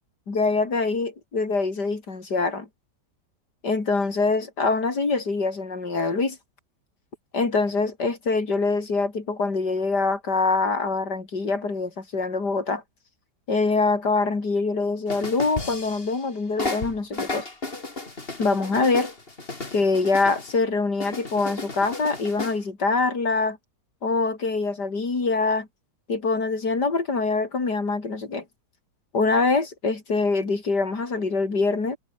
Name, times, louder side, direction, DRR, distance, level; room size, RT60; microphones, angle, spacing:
voice 1, 0.3-2.7 3.6-6.4 7.3-12.8 13.5-17.5 18.4-19.1 19.7-23.6 24.0-25.7 26.1-28.4 29.1-32.0, left 3 dB, 70° left, 4.3 m, -24 dB
sound 1, 15.1-16.3 16.6-20.6 21.0-22.6, left 2 dB, 30° left, 3.3 m, -34 dB
omnidirectional pair, 1.8 m